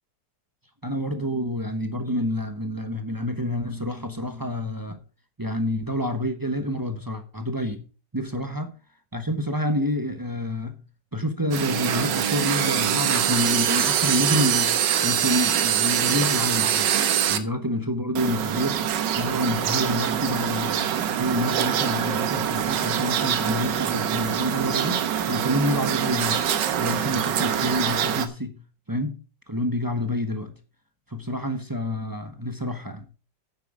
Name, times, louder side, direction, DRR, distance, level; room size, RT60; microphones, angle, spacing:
voice 1, 0.8-5.0 5.4-7.8 8.1-8.7 9.1-10.8 11.1-14.7 15.0-16.9 17.3-18.8 19.2-20.9 21.2-26.4 26.8-28.6 28.9-29.2 29.5-30.5 31.1-33.0, left 1 dB, 15° right, 0.7 m, -28 dB
sound 1, 11.5-17.4 18.2-28.3, right 9 dB, 80° right, 1.6 m, -24 dB
9.5 x 8.4 x 4.9 m
omnidirectional pair, 1.9 m